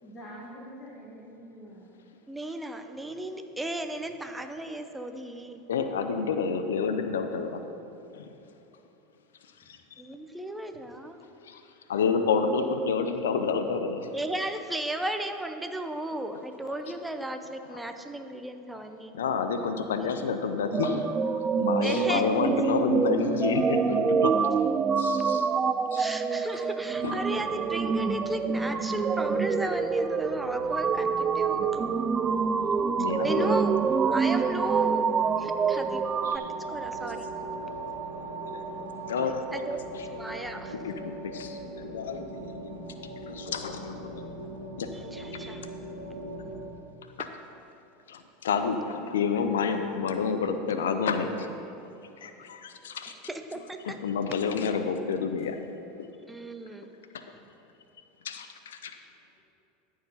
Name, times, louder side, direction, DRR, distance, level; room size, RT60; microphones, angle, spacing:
voice 1, 0.0-1.9 9.6-9.7 52.7-52.8, equal, 30° left, -7 dB, 2.3 m, -45 dB
voice 2, 2.3-5.7 10.0-11.2 14.1-19.1 21.8-22.2 26.0-32.0 33.2-35.1 35.4-37.3 39.5-39.8 40.0-40.7 44.9-45.7 53.3-54.0 56.3-56.9, right 1 dB, 10° right, 7 dB, 0.7 m, -35 dB
voice 3, 5.7-7.6 8.1-8.3 9.7-9.8 11.4-11.6 11.9-14.1 17.7-17.8 18.7-18.8 19.1-24.5 25.0-25.5 25.9-26.1 27.0-27.3 32.9-33.7 36.2-36.4 37.6-37.9 38.3-38.6 39.1-39.6 39.9-40.1 40.8-44.3 44.8-44.9 48.1-51.5 52.2-53.1 53.8-55.6 56.0-56.1 57.1-57.2 58.2-59.0, left 5 dB, 85° left, 8 dB, 0.5 m, -29 dB
sound 1, 20.7-36.4, right 5 dB, 30° right, 0.3 m, -26 dB
sound 2, 26.9-46.6, right 3 dB, 85° right, 1.7 m, -40 dB
13.5 x 4.8 x 5.4 m, 2.9 s
hypercardioid pair, 90°, 0 cm